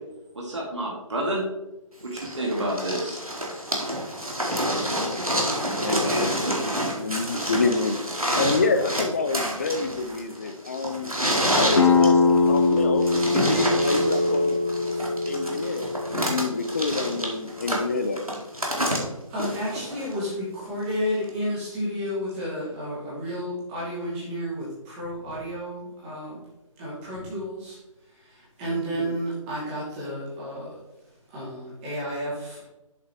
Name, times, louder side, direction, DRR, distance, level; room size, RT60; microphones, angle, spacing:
voice 1, 0.4-1.4 2.0-3.2 6.1-6.2 6.5-6.6, right 1 dB, 55° right, -3 dB, 2.1 m, -29 dB
sound 1, 2.2-20.3 21.3-21.4, equal, 90° right, 2.0 m, -28 dB
voice 2, 5.8-6.4 6.9-8.0 8.3-11.1 11.5-12.2 12.5-14.6 15.3-18.2 28.6-29.2, left 3 dB, 25° left, 9 dB, 0.5 m, -27 dB
sound 2, 11.8-17.2, left 4 dB, 55° left, 1.2 m, -23 dB
Chink clink, 13.6-18.1, left 1 dB, 30° right, 1.2 m, -31 dB
voice 3, 18.8-26.4 26.8-27.8 28.1-30.8 31.3-32.6, equal, 15° right, -8 dB, 2.7 m, -32 dB
7.6 x 6.4 x 3.1 m, 0.98 s
figure-of-eight pair, 145°, 18 cm